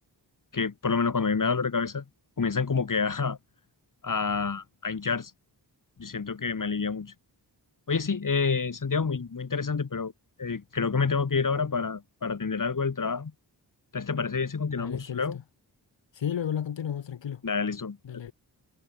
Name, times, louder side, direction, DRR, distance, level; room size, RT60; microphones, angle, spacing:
voice 1, 0.5-2.0 2.4-3.4 4.0-5.3 6.0-7.1 7.9-10.1 10.4-13.3 13.9-15.4 17.4-18.0, left 5 dB, 45° left, 1.4 m, -28 dB
voice 2, 14.8-15.4 16.1-17.4 18.0-18.3, left 9 dB, 85° left, 1.0 m, -33 dB
cardioid pair, 40°, 43 cm